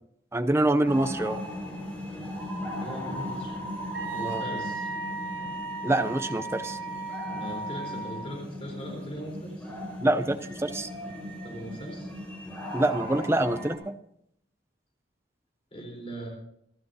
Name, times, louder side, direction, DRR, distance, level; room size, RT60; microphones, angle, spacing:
voice 1, 0.3-1.4 4.2-4.4 5.8-6.8 10.0-10.9 12.7-14.0, right 1 dB, 15° right, 10 dB, 0.6 m, -25 dB
sound 1, 0.8-13.8, equal, 10° left, 5.2 m, -38 dB
voice 2, 2.7-3.6 4.1-4.9 7.3-9.7 11.4-12.1 15.7-16.3, equal, 35° left, -1 dB, 4.1 m, -39 dB
Wind instrument woodwind instrument, 3.9-8.3, right 3 dB, 70° right, 6.3 m, -35 dB
27.5 x 12.0 x 2.8 m, 0.73 s
head